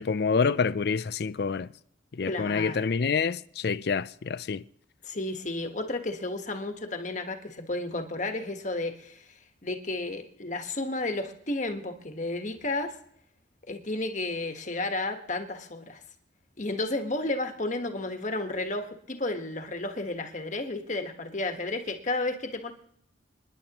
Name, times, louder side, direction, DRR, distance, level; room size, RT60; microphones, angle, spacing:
voice 1, 0.0-1.7 2.1-4.6, left 5 dB, 60° left, 0.4 m, -27 dB
voice 2, 2.3-2.9 5.0-12.9 13.7-16.0 16.6-22.7, left 2 dB, 40° left, 1.4 m, -32 dB
27.5 x 10.5 x 3.0 m
head